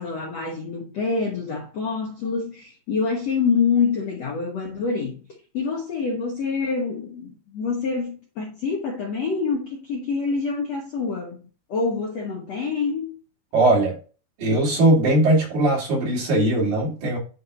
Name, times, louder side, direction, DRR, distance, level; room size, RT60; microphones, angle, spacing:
voice 1, 0.0-5.2 5.5-13.1, left 5 dB, 80° left, 1.4 m, -26 dB
voice 2, 13.5-14.0 14.4-17.2, right 1 dB, 50° right, 4.9 m, -19 dB
9.5 x 4.2 x 4.0 m
omnidirectional pair, 5.3 m